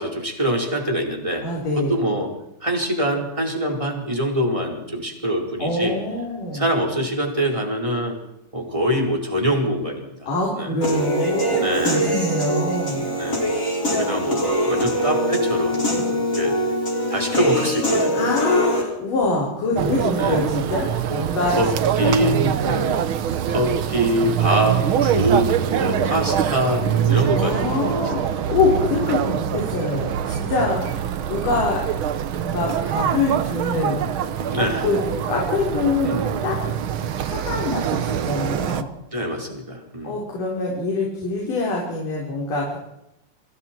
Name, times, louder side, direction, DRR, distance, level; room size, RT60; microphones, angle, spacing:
voice 1, 0.0-1.5 1.8-2.3 2.6-6.0 6.5-8.2 8.5-10.3 10.6-10.7 11.6-12.1 13.1-13.4 13.9-16.6 17.1-18.3 20.2-20.4 21.6-21.7 22.0-23.1 23.5-27.8 34.5-34.8 36.0-36.6 39.1-40.2, equal, 10° right, 0 dB, 4.6 m, -24 dB
voice 2, 1.4-2.0 5.6-6.7 10.3-13.1 16.0-16.1 18.1-21.6 22.0-22.8 27.3-31.0 31.3-31.8 32.4-34.1 34.6-36.6 37.2-38.9 40.0-42.8, left 3 dB, 75° left, -3 dB, 5.9 m, -24 dB
Human voice / Piano, 10.8-18.8, equal, 20° left, 6.0 m, -23 dB
sound 1, 19.8-38.8, right 9 dB, 85° right, 1.1 m, -24 dB
29.0 x 23.5 x 4.7 m, 0.83 s
omnidirectional pair, 3.8 m